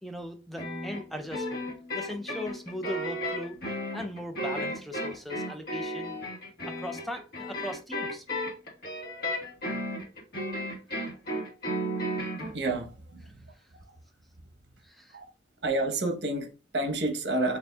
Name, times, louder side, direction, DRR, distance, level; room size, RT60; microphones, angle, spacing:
voice 1, 0.0-1.7 1.9-3.6 3.9-6.2 6.7-8.2 14.8-15.2, left 1 dB, ahead, 0.4 m, -39 dB
sound 1, 0.6-12.5, equal, 60° left, 1.4 m, -34 dB
voice 2, 12.4-13.5 15.1-15.2 15.6-17.6, right 2 dB, 75° right, 0.9 m, -30 dB
6.7 x 2.5 x 2.3 m
head